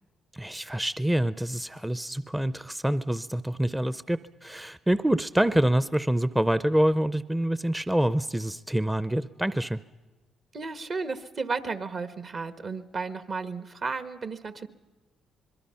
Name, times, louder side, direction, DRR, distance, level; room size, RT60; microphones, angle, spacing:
voice 1, 0.3-9.8, right 1 dB, 10° right, 15 dB, 0.6 m, -26 dB
voice 2, 10.5-14.7, right 4 dB, 50° right, 11 dB, 1.3 m, -33 dB
25.0 x 22.0 x 5.7 m, 1.2 s
supercardioid pair, 55°, 0 cm